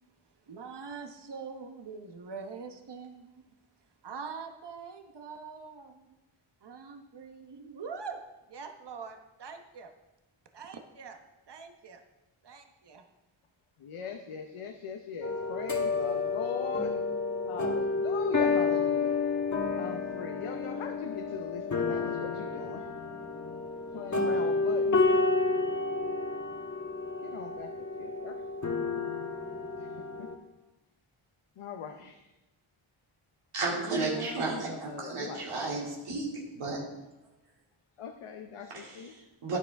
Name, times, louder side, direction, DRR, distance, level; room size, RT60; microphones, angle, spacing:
voice 1, 0.5-3.3 4.0-6.0 6.6-8.2 8.5-9.9 10.5-11.2 11.5-12.0 12.4-13.0, right 5 dB, 55° right, 5 dB, 1.1 m, -43 dB
voice 2, 13.8-16.9 17.5-19.1 19.8-22.9 23.9-25.0 27.2-27.7 28.0-28.4 29.8-30.3 31.6-32.2 33.7-35.4 35.7-35.9 38.0-38.7 38.9-39.1, left 6 dB, 80° left, 4 dB, 0.9 m, -40 dB
sound 1, 15.2-30.4, left 3 dB, 35° left, 1.6 m, -30 dB
voice 3, 33.5-36.3 36.5-36.8 38.7-39.6, right 3 dB, 85° right, -3 dB, 2.6 m, -33 dB
12.0 x 9.7 x 3.4 m, 1.0 s
cardioid pair, 65°, 50 cm